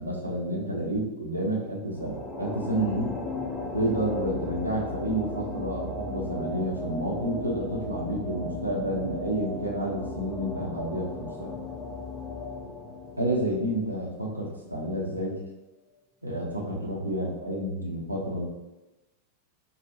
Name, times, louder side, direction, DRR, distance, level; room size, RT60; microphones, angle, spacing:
voice 1, 0.0-3.1 3.7-11.6 13.2-15.4 16.2-18.5, right 1 dB, 85° right, -3 dB, 0.7 m, -30 dB
sound 1, 1.9-14.5, left 2 dB, 10° left, 0.6 m, -36 dB
4.6 x 2.4 x 2.6 m, 1.0 s
figure-of-eight pair, 90°, 0 cm